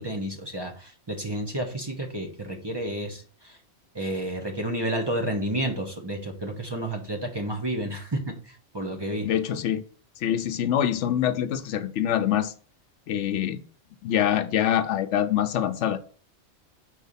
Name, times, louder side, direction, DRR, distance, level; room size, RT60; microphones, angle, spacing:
voice 1, 0.0-3.6 3.9-9.3, right 1 dB, 20° right, 1.1 m, -31 dB
voice 2, 9.2-9.8 10.2-12.5 13.1-13.6 14.0-16.0, left 10 dB, 85° left, 1.0 m, -25 dB
4.9 x 4.6 x 5.5 m
omnidirectional pair, 1.2 m